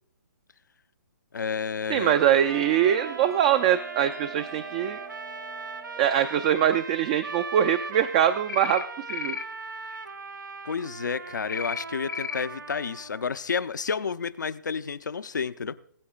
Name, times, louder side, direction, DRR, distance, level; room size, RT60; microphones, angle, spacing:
voice 1, 1.3-2.1 10.6-15.7, left 6 dB, 70° left, 13 dB, 0.6 m, -30 dB
voice 2, 1.9-5.0 6.0-8.8 9.1-9.4, right 10 dB, 25° right, 11 dB, 0.4 m, -23 dB
sound 1, 2.3-13.3, right 4 dB, 80° right, 1.0 m, -40 dB
Bell, 2.5-7.6, right 7 dB, 45° right, 1.1 m, -44 dB
sound 2, 8.5-8.8 9.1-9.4 11.5-11.8 12.1-12.4, left 7 dB, 90° left, 1.0 m, -32 dB
21.0 x 8.4 x 2.3 m, 0.63 s
figure-of-eight pair, 135°, 10 cm